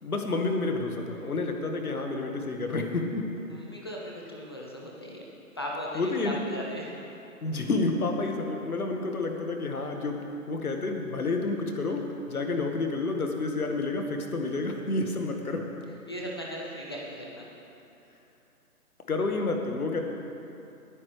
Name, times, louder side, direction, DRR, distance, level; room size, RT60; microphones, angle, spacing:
voice 1, 0.0-3.3 5.9-6.4 7.4-10.2 10.5-15.7 19.1-20.0, left 3 dB, 70° left, 3 dB, 1.7 m, -29 dB
voice 2, 3.5-5.2 5.6-6.9 16.1-17.5, equal, 15° left, -3 dB, 0.6 m, -37 dB
19.0 x 9.8 x 3.3 m, 2.8 s
figure-of-eight pair, 140°, 45 cm